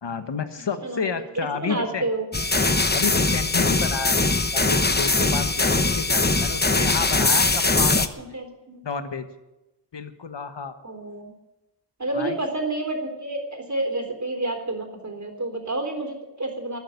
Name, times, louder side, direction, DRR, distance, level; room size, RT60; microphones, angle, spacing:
voice 1, 0.0-2.0 2.9-8.1 8.8-9.3 9.9-10.7 12.1-12.4, left 5 dB, 80° left, 9 dB, 1.5 m, -30 dB
voice 2, 0.6-2.3 8.2-8.8 10.8-11.3 12.0-16.8, right 2 dB, 40° right, 3 dB, 3.7 m, -30 dB
sound 1, 2.3-8.1, left 3 dB, 25° left, 1.0 m, -21 dB
13.5 x 9.5 x 9.6 m, 0.99 s
wide cardioid pair, 65°, 42 cm